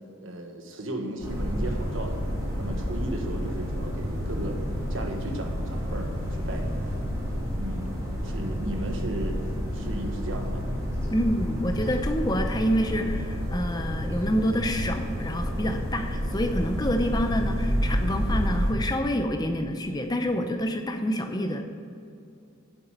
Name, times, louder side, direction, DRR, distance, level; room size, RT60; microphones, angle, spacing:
voice 1, 0.2-2.2 2.6-4.6 4.9-6.9 7.6-9.4 9.7-10.6, right 1 dB, 65° right, 3 dB, 1.3 m, -35 dB
sound 1, 1.2-18.7, equal, 15° right, 2.5 m, -29 dB
voice 2, 11.1-21.6, equal, 20° left, 6 dB, 0.6 m, -27 dB
8.0 x 7.3 x 8.0 m, 2.5 s
head